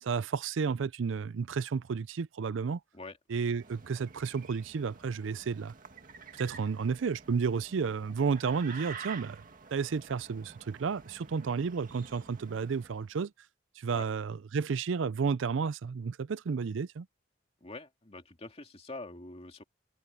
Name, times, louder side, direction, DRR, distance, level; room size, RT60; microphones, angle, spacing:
voice 1, 0.0-2.8 3.3-5.7 6.4-9.4 9.7-13.3 13.8-17.1, right 5 dB, 70° right, 0.4 m, -32 dB
sound 1, 3.3-13.1, right 6 dB, 45° right, 2.1 m, -49 dB
voice 2, 17.6-19.6, left 2 dB, 30° left, 2.5 m, -45 dB
open air
head